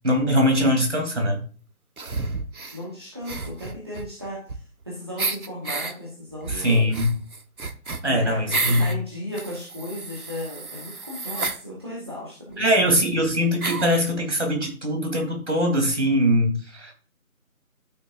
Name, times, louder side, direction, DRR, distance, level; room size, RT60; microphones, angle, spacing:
voice 1, 0.0-1.4 6.5-7.1 8.0-8.9 12.6-16.9, equal, 50° right, 2 dB, 3.4 m, -22 dB
sound 1, 2.0-2.8 3.2-4.8 5.2-5.9 6.4-9.0 9.3-11.6 12.5-12.6 12.8-12.9 13.6-14.0, right 3 dB, 80° right, 1.1 m, -31 dB
voice 2, 2.7-4.6 4.9-6.9 8.1-12.7, left 1 dB, 20° right, -5 dB, 1.2 m, -35 dB
13.0 x 6.4 x 2.6 m, 0.39 s
figure-of-eight pair, 165°, 43 cm